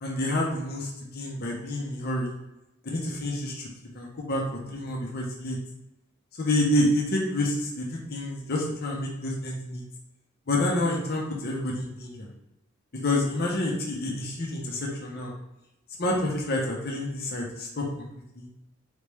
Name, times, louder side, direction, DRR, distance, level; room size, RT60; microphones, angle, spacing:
voice 1, 0.0-2.3 2.8-3.6 3.9-4.4 4.7-5.6 6.4-9.8 10.5-12.3 13.0-15.3 16.0-18.0 18.4-18.5, left 1 dB, 55° left, -2 dB, 0.8 m, -28 dB
4.1 x 3.3 x 3.3 m, 0.89 s
head